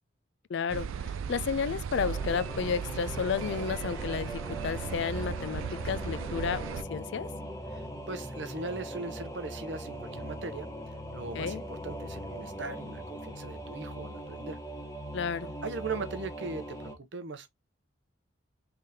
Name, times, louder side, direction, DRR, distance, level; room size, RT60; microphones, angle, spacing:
voice 1, 0.5-6.6 6.9-7.3 11.3-11.6 15.1-15.5, left 6 dB, 65° left, 0.4 m, -32 dB
sound 1, 0.7-6.8, right 6 dB, 85° right, 0.3 m, -37 dB
Singing / Musical instrument, 1.9-17.0, equal, 15° left, 0.8 m, -40 dB
voice 2, 7.7-10.7 11.1-14.6 15.6-17.5, right 3 dB, 65° right, 0.7 m, -39 dB
3.7 x 3.4 x 2.7 m
head